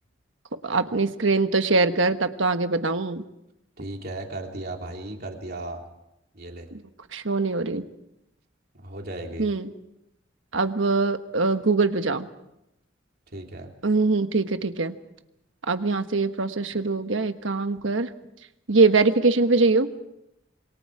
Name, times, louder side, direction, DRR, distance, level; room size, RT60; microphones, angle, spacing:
voice 1, 0.6-3.2 7.1-7.8 9.4-9.7 10.5-12.3 13.8-15.0 15.7-18.1 18.7-19.9, right 3 dB, 85° right, 9 dB, 1.3 m, -22 dB
voice 2, 3.8-5.8 6.3-6.7 8.7-9.5 13.3-13.7, right 2 dB, 55° right, 2 dB, 3.3 m, -36 dB
27.0 x 23.5 x 4.9 m, 0.85 s
head